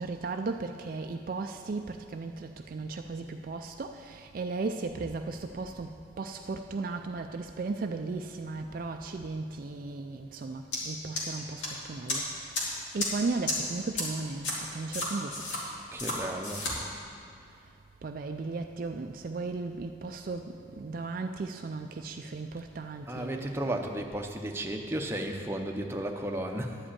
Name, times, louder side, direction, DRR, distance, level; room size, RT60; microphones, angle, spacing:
voice 1, 0.0-15.4 18.0-23.7, right 3 dB, 45° right, 5 dB, 0.4 m, -36 dB
sound 1, 10.7-10.8 11.2-11.7 12.1-12.2 12.5-12.6 13.0-13.1 13.5-13.6 14.0-14.1 14.4-14.5 14.9-15.6 16.0-16.1 16.4-16.7, left 2 dB, 80° left, 2.4 m, -31 dB
voice 2, 15.9-16.9 23.1-26.8, right 1 dB, 15° right, 2 dB, 0.7 m, -34 dB
11.0 x 5.1 x 8.5 m, 2.6 s
head